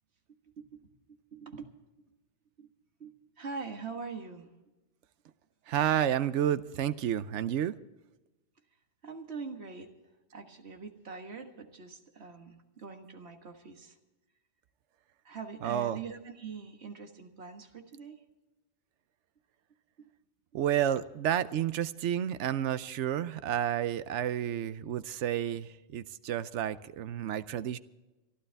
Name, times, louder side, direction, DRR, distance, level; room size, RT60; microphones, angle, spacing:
voice 1, 1.1-1.7 2.6-2.7 3.0-3.1 3.4-4.5 9.0-9.9 10.3-14.0 15.3-18.2 20.0-20.1, right 4 dB, 65° right, 5 dB, 1.8 m, -43 dB
voice 2, 5.7-7.8 15.6-16.0 20.5-27.8, right 10 dB, 85° right, 14 dB, 1.0 m, -30 dB
24.5 x 12.5 x 3.4 m, 1.0 s
omnidirectional pair, 1.2 m